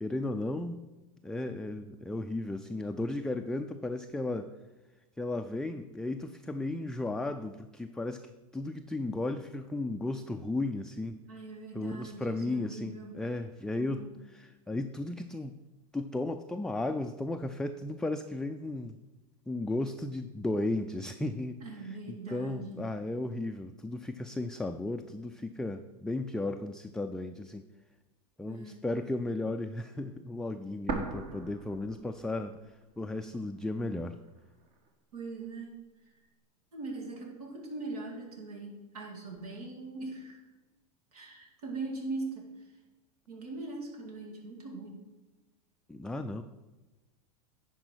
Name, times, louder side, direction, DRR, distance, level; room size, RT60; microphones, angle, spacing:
voice 1, 0.0-0.9 1.2-4.5 5.2-11.2 11.7-14.1 14.3-15.6 15.9-19.0 19.5-21.6 22.1-27.7 28.4-34.2 45.9-46.4, left 2 dB, 5° left, 5 dB, 0.3 m, -35 dB
voice 2, 11.3-13.2 13.8-14.1 21.6-22.9 28.5-28.8 35.1-36.1 36.7-40.4 41.1-42.7 43.3-45.1, right 3 dB, 80° right, 1 dB, 2.2 m, -41 dB
sound 1, 30.9-32.8 33.1-33.2 33.9-34.9, right 4 dB, 50° right, 1.6 m, -39 dB
10.5 x 4.6 x 6.2 m, 1.1 s
hypercardioid pair, 100°, 19 cm